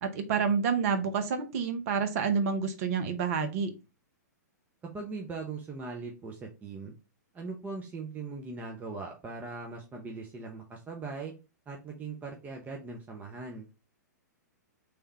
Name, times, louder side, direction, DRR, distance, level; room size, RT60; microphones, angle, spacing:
voice 1, 0.0-3.7, right 6 dB, 50° right, 8 dB, 0.9 m, -28 dB
voice 2, 4.9-6.9 7.3-11.3 11.7-13.7, right 4 dB, 15° right, 1 dB, 0.8 m, -40 dB
3.5 x 3.4 x 4.2 m, 0.30 s
hypercardioid pair, 115°, 10 cm